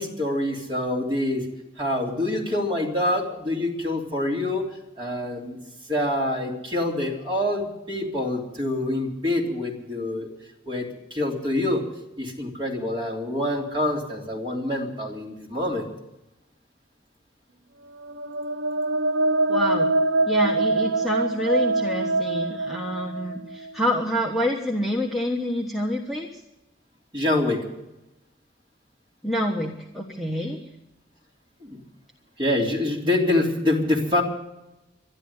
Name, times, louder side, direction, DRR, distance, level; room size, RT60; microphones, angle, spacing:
voice 1, 0.0-1.5 1.8-4.7 5.0-5.6 5.9-10.3 10.6-11.9 12.2-15.9 27.1-27.6 31.6-31.8 32.4-34.2, left 1 dB, 25° right, -2 dB, 3.3 m, -26 dB
sound 1, 17.9-23.7, right 2 dB, 70° right, 0.7 m, -24 dB
voice 2, 19.5-19.9 20.3-26.4 29.2-30.6, equal, ahead, -1 dB, 1.2 m, -27 dB
12.0 x 11.5 x 9.6 m, 0.91 s
head